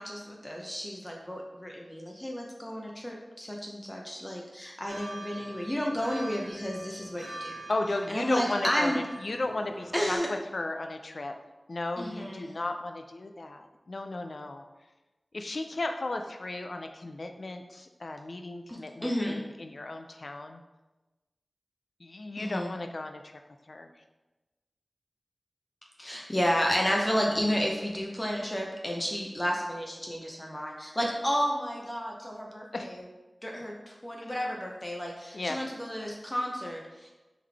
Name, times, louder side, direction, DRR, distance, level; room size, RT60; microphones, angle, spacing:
voice 1, 0.0-7.5 8.1-9.0 9.9-10.3 12.0-12.5 18.7-19.4 22.4-22.7 26.0-33.0 33.4-37.1, equal, 20° left, -1 dB, 0.6 m, -31 dB
sound 1, 4.9-10.2, right 1 dB, 85° right, 1.3 m, -44 dB
voice 2, 7.7-11.3 11.7-14.6 15.3-20.6 22.0-23.3 23.7-23.9 32.7-32.9 34.2-34.4 35.3-35.6, left 2 dB, 70° left, 6 dB, 0.3 m, -35 dB
3.7 x 3.3 x 3.4 m, 1.1 s
wide cardioid pair, 45°, 0 cm